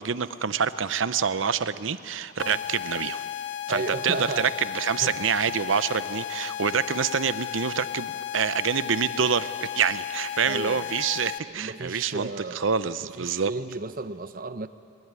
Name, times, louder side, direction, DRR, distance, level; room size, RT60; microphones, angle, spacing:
voice 1, 0.0-3.2 3.7-12.3 12.5-13.5, right 6 dB, 85° right, 14 dB, 0.7 m, -26 dB
sound 1, 2.4-11.4, left 11 dB, 65° left, 0.6 m, -34 dB
voice 2, 3.7-4.5 5.0-5.2 10.4-10.9 11.5-12.7 13.2-14.7, right 3 dB, 45° right, 11 dB, 0.8 m, -33 dB
21.5 x 21.0 x 9.7 m, 2.5 s
head